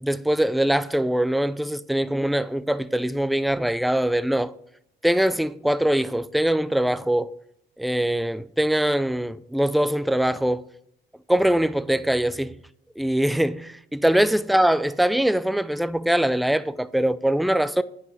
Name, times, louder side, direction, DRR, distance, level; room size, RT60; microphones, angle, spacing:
voice 1, 0.0-4.5 5.0-7.3 7.8-10.6 11.3-12.6 13.0-17.8, right 1 dB, ahead, 0.4 m, -22 dB
9.5 x 5.7 x 6.3 m
cardioid pair, 90°, 20 cm